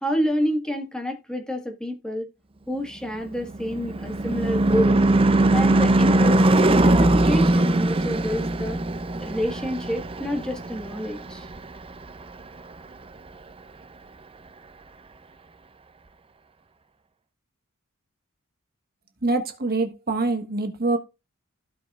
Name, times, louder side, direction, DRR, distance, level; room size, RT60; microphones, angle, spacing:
voice 1, 0.0-2.3 2.7-5.0 5.5-8.8 9.2-11.5, equal, 5° left, 1.6 m, -28 dB
Car passing by / Truck / Engine, 3.1-11.8, right 2 dB, 25° right, 0.6 m, -21 dB
voice 2, 19.2-21.0, right 3 dB, 45° right, 1.5 m, -25 dB
16.0 x 5.4 x 2.4 m
head